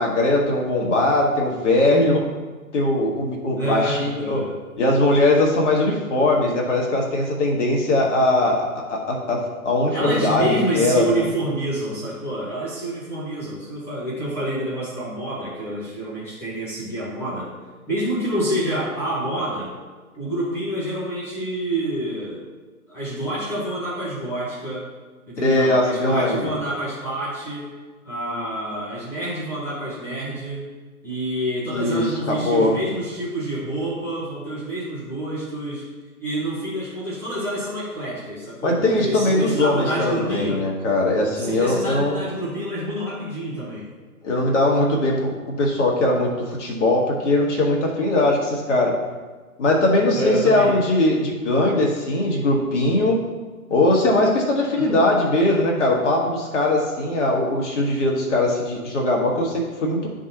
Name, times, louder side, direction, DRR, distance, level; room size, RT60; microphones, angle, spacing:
voice 1, 0.0-2.3 2.7-4.4 4.8-11.2 25.4-26.5 31.7-32.8 38.6-42.2 44.2-49.0 49.6-53.2 53.7-60.1, left 2 dB, 50° left, -1 dB, 1.7 m, -20 dB
voice 2, 3.6-4.5 9.9-17.5 17.9-19.7 20.1-22.4 22.9-24.9 25.3-27.7 28.0-30.7 31.0-35.8 36.2-40.6 41.4-43.8 50.1-50.7 54.9-55.0, right 1 dB, 5° left, -10 dB, 1.4 m, -28 dB
11.5 x 3.8 x 2.9 m, 1.3 s
figure-of-eight pair, 145°, 45 cm